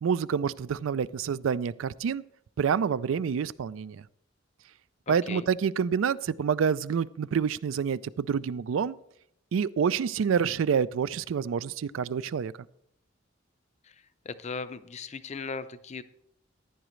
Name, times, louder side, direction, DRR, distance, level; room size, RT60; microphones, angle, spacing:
voice 1, 0.0-2.2 2.6-4.0 5.1-9.0 9.5-12.5, right 7 dB, 85° right, 18 dB, 0.4 m, -27 dB
voice 2, 5.1-5.5 14.3-16.0, left 4 dB, 35° left, 12 dB, 0.5 m, -37 dB
15.0 x 9.9 x 3.1 m, 0.74 s
head